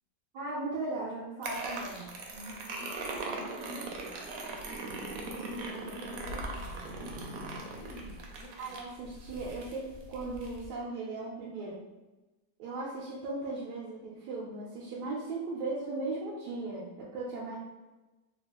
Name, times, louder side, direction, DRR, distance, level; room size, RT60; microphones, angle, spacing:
voice 1, 0.3-2.0 8.6-11.8 12.6-17.6, right 2 dB, 85° right, -6 dB, 1.2 m, -37 dB
sound 1, 1.4-10.7, right 2 dB, 70° right, 0.9 m, -40 dB
voice 2, 2.3-4.3 5.0-8.8, left 1 dB, 55° left, -5 dB, 0.8 m, -47 dB
3.7 x 2.3 x 2.9 m, 1.1 s
omnidirectional pair, 1.7 m